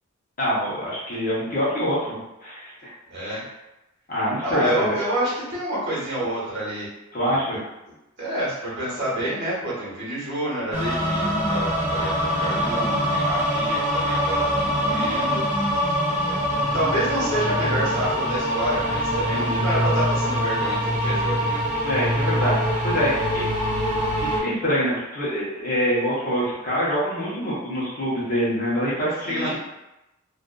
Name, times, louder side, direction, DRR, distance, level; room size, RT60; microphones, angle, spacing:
voice 1, 0.4-2.7 3.3-3.4 4.1-5.0 7.1-7.6 19.3-19.6 21.8-23.5 24.2-29.6, equal, 40° left, -8 dB, 0.8 m, -25 dB
voice 2, 3.1-3.5 4.4-6.9 7.2-7.3 8.2-15.4 15.7-15.9 16.2-16.4 16.7-21.6 29.2-29.6, right 1 dB, 50° right, -8 dB, 1.1 m, -28 dB
sound 1, 10.7-24.4, equal, 35° right, 0.7 m, -24 dB
sound 2, 10.8-18.7, equal, 20° left, 0.5 m, -35 dB
2.5 x 2.4 x 2.2 m, 0.95 s
head